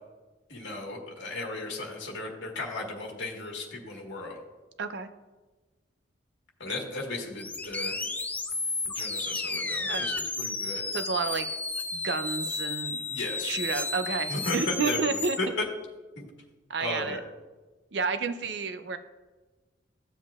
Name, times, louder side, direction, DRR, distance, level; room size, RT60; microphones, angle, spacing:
voice 1, 0.5-4.4 6.6-7.9 8.8-10.8 13.1-13.6 14.3-15.0 15.4-15.6 16.2-16.3 16.8-17.2, left 2 dB, 70° left, -1 dB, 1.6 m, -35 dB
voice 2, 4.8-5.1 9.9-10.1 10.9-11.5 11.9-13.0 13.4-15.4 16.7-17.2 17.9-19.0, right 5 dB, 60° right, 10 dB, 0.5 m, -30 dB
sound 1, 7.4-15.4, left 3 dB, 10° left, 0.3 m, -33 dB
13.5 x 7.4 x 2.4 m, 1.2 s
head